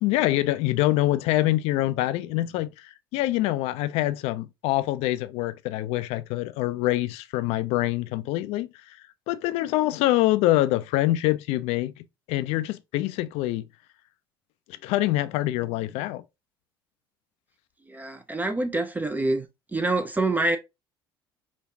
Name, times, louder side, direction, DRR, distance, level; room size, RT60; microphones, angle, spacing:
voice 1, 0.0-8.7 9.3-11.9 12.3-13.6 14.8-16.2, left 16 dB, 55° left, 0.4 m, -25 dB
voice 2, 17.9-19.5 19.7-20.6, right 2 dB, 15° right, 0.5 m, -26 dB
5.0 x 2.3 x 2.6 m
figure-of-eight pair, 60°, 13 cm